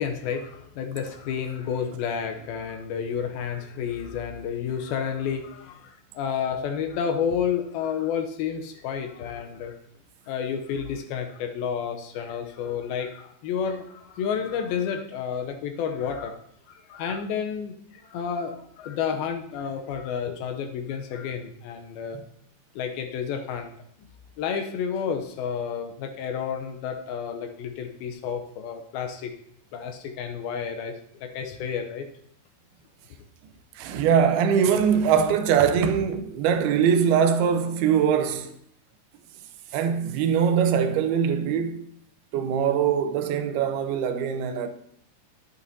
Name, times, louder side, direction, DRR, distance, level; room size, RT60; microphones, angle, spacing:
voice 1, 0.0-9.7 10.3-16.4 16.7-22.2 22.8-23.7 24.4-29.3 29.7-30.9 31.2-32.1, left 7 dB, 80° left, 2.4 m, -30 dB
voice 2, 33.8-38.6 39.7-41.9 42.3-44.7, right 7 dB, 80° right, 2.5 m, -22 dB
11.0 x 8.5 x 2.7 m
omnidirectional pair, 4.6 m